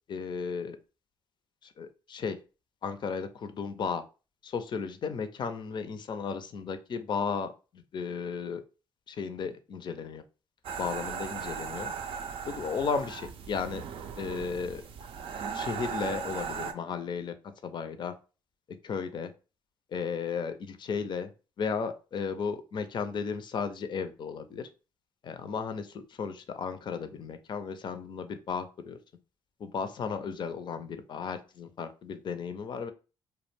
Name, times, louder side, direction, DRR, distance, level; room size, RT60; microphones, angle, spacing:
voice 1, 0.1-0.8 1.8-2.4 2.8-4.0 4.4-8.6 9.1-10.2 10.8-11.9 12.4-13.8 14.2-14.8 15.5-17.3 17.6-18.1 18.8-19.3 19.9-21.3 21.6-24.7 25.2-29.0 29.6-32.9, left 5 dB, 50° left, 9 dB, 0.4 m, -34 dB
sound 1, 10.6-16.7, right 6 dB, 60° right, 0.4 m, -37 dB
2.3 x 2.1 x 3.2 m, 0.33 s
supercardioid pair, 60°, 10 cm